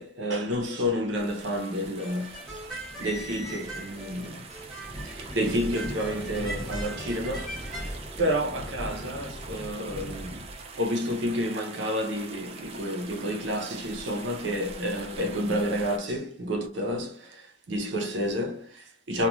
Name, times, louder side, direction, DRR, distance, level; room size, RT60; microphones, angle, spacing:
voice 1, 0.0-2.4 3.0-4.6 5.0-7.8 8.2-19.3, equal, 75° right, 0.6 m, -30 dB
sound 1, 1.1-16.0, right 4 dB, 30° right, 0.3 m, -44 dB
sound 2, 2.0-7.9, right 1 dB, ahead, 0.8 m, -41 dB
sound 3, 2.4-10.8, equal, 30° left, 0.5 m, -40 dB
2.4 x 2.2 x 2.9 m
head